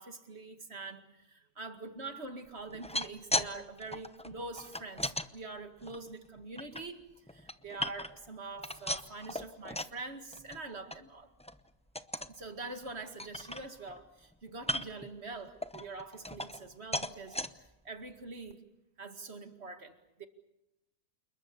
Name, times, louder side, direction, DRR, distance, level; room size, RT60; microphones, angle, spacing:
voice 1, 0.0-7.0 7.3-11.3 12.3-17.4 17.8-18.6 19.0-20.3, right 3 dB, 45° right, 7 dB, 2.3 m, -44 dB
sound 1, 2.7-3.5 3.8-5.3 5.8-6.8 7.3-8.3 8.6-10.0 10.3-10.6 10.9-11.0 11.4-11.6 12.0-12.4 12.8-12.9 13.2-14.0 14.6-15.1 15.6-16.7 16.9-17.5 18.1-18.2 18.5-18.6, left 1 dB, 5° left, 0.5 m, -37 dB
28.5 x 21.0 x 6.9 m, 0.94 s
omnidirectional pair, 1.6 m